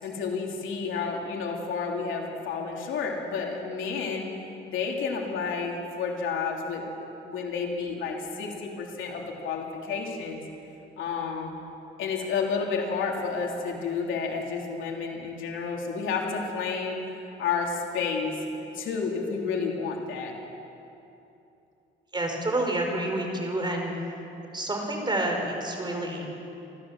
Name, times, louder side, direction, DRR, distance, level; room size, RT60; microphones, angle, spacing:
voice 1, 0.0-4.2 4.7-6.8 7.2-10.4 11.0-11.5 12.0-17.0 17.4-18.4 18.7-20.3, left 5 dB, 80° left, 0 dB, 3.3 m, -30 dB
voice 2, 22.1-23.9 24.5-26.5, right 1 dB, 20° right, 2 dB, 4.9 m, -29 dB
27.0 x 14.0 x 7.5 m, 2.9 s
cardioid pair, 90°, 20 cm